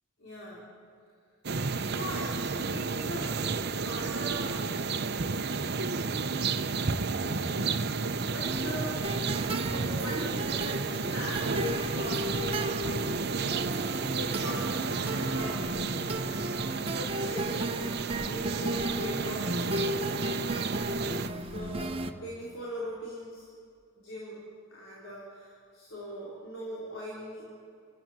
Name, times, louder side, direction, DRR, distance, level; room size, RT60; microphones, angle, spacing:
voice 1, 0.2-0.7 1.8-4.6 7.0-7.7 8.2-9.0 9.6-12.8 14.1-16.4 16.8-19.6 21.3-23.5 24.0-24.4 24.7-27.6, equal, 85° left, -6 dB, 4.6 m, -40 dB
sound 1, 1.4-21.3, right 4 dB, 55° right, 0.9 m, -32 dB
sound 2, 8.4-22.1, right 1 dB, 30° right, 1.1 m, -35 dB
29.5 x 14.0 x 9.0 m, 2.3 s
head